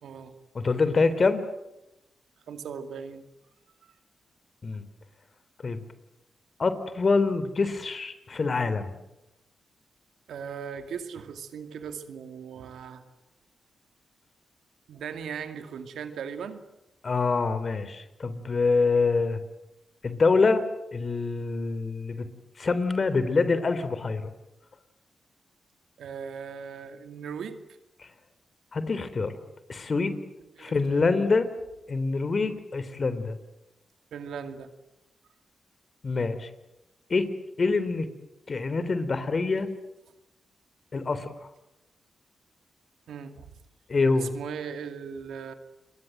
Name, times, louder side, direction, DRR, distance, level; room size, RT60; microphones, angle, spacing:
voice 1, 0.0-0.4 2.5-3.3 3.8-3.9 10.3-13.0 14.9-16.6 26.0-27.8 30.5-31.1 34.1-34.7 43.1-43.5 44.1-45.5, right 7 dB, 80° right, 8 dB, 2.3 m, -38 dB
voice 2, 0.6-1.4 4.6-4.8 5.6-5.8 6.6-9.0 17.0-19.4 20.0-20.6 20.9-22.3 22.6-24.3 28.0-28.1 28.7-29.4 29.7-30.2 30.6-31.5 31.9-33.4 36.0-36.5 37.1-37.3 37.6-38.1 38.5-39.7 40.9-41.3 43.9-44.3, left 4 dB, 50° left, 12 dB, 3.4 m, -25 dB
29.0 x 22.0 x 7.9 m, 0.92 s
supercardioid pair, 40°, 0 cm